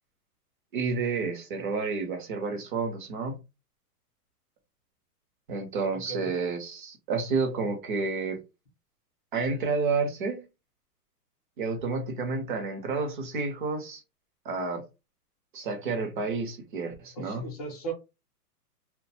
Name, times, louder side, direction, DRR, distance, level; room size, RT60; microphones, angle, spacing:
voice 1, 0.7-3.4 5.5-8.4 9.3-10.4 11.6-14.0 14.4-14.8 15.5-17.5, right 4 dB, 35° right, 0.6 m, -30 dB
voice 2, 5.9-6.3 17.2-17.9, right 4 dB, 25° left, 0.6 m, -37 dB
2.2 x 2.2 x 2.7 m
hypercardioid pair, 160°, 47 cm